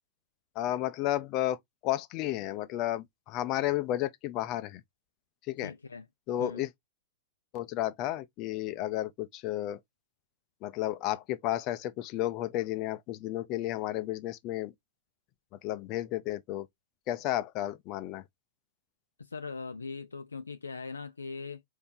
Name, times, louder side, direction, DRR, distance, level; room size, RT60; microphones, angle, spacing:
voice 1, 0.6-1.6 1.8-4.8 5.5-5.7 6.3-6.7 7.5-9.8 10.6-14.7 15.6-16.7 17.1-18.2, left 14 dB, 40° left, 0.6 m, -32 dB
voice 2, 5.6-6.1 6.4-6.7 19.2-21.6, left 4 dB, 85° left, 0.4 m, -40 dB
4.4 x 2.7 x 3.6 m
figure-of-eight pair, 100°, 0 cm